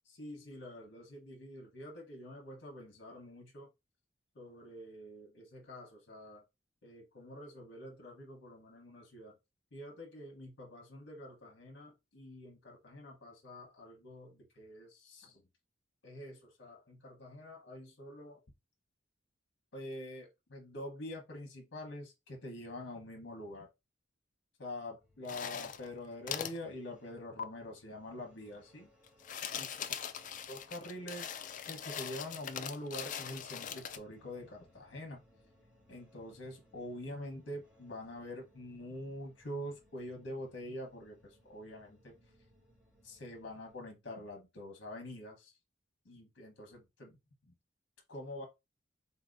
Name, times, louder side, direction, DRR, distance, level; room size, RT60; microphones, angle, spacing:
voice 1, 0.1-3.7 4.3-6.4 6.8-9.3 9.7-15.4 16.0-18.4 19.7-23.7 24.6-28.9 29.5-29.8 30.5-31.4 31.7-35.2 35.9-42.1 43.0-45.5 46.0-47.2 47.5-47.6 48.1-48.5, left 1 dB, 65° left, 1.0 m, -46 dB
sound 1, 25.0-43.8, left 1 dB, 5° right, 1.7 m, -65 dB
sound 2, 25.2-25.9 26.3-26.6 27.4-27.5 29.1-34.0, left 8 dB, 45° left, 0.4 m, -41 dB
3.9 x 2.8 x 2.5 m
head